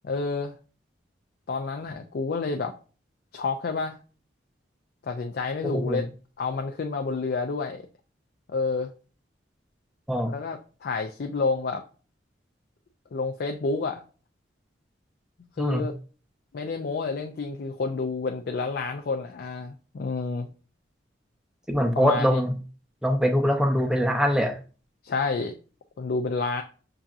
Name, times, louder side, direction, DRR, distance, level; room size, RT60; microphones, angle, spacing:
voice 1, 0.0-0.5 1.5-2.7 3.3-4.0 5.0-6.1 6.4-7.9 8.5-8.9 10.3-11.8 13.1-14.0 15.6-15.9 16.5-20.5 22.0-22.3 25.0-25.5 26.0-26.6, left 4 dB, 55° left, 5 dB, 0.4 m, -29 dB
voice 2, 5.6-6.0 10.1-10.3 15.6-15.8 21.7-22.6 23.0-24.6, equal, 5° right, 5 dB, 0.5 m, -23 dB
5.7 x 2.7 x 2.4 m, 0.37 s
head